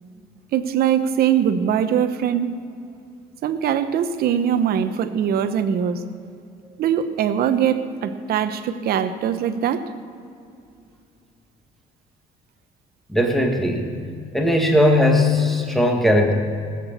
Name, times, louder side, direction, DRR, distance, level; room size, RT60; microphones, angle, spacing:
voice 1, 0.5-2.6 3.4-6.0 6.8-9.9, right 9 dB, 65° right, 10 dB, 1.0 m, -22 dB
voice 2, 13.1-13.9 14.3-16.3, left 1 dB, ahead, 2 dB, 1.8 m, -18 dB
19.5 x 7.9 x 7.1 m, 2.5 s
cardioid pair, 110°, 17 cm